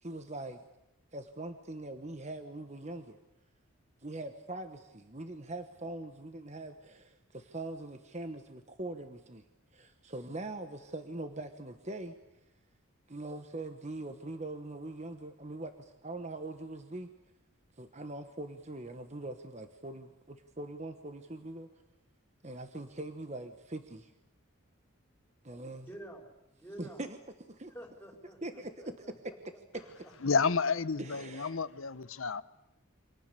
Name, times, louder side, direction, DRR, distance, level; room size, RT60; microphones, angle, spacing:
voice 1, 0.0-0.6 1.1-3.2 4.0-9.4 9.7-12.1 13.1-17.1 17.8-21.7 22.4-24.1 25.4-25.9 26.8-27.2 27.5-27.7 28.4-29.1 31.0-31.6, right 2 dB, 30° right, 1.3 m, -42 dB
voice 2, 25.9-26.3 26.5-27.0 27.7-29.1 29.5-29.6, right 1 dB, 10° left, 5.3 m, -49 dB
voice 3, 30.2-32.4, left 5 dB, 70° left, 0.9 m, -30 dB
29.0 x 26.0 x 6.9 m
head